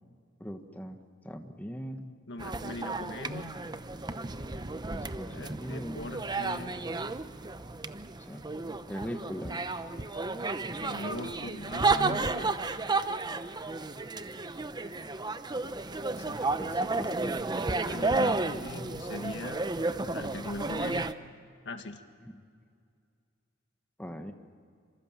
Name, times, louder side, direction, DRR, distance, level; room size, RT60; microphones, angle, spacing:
voice 1, 0.4-1.0 1.2-2.1 4.9-6.0 8.3-8.5 8.9-9.6 10.6-10.8 16.3-17.4 18.2-18.9 22.2-22.3 24.0-24.3, equal, 10° left, 5 dB, 1.3 m, -40 dB
voice 2, 2.3-3.6 5.2-6.7 10.8-12.5 14.8-14.9 16.2-16.4 17.8-19.7 20.1-21.1 21.7-22.0, left 2 dB, 60° left, 7 dB, 1.8 m, -40 dB
sound 1, 2.4-21.1, right 3 dB, 20° right, 0.8 m, -32 dB
27.0 x 26.0 x 7.4 m, 2.2 s
head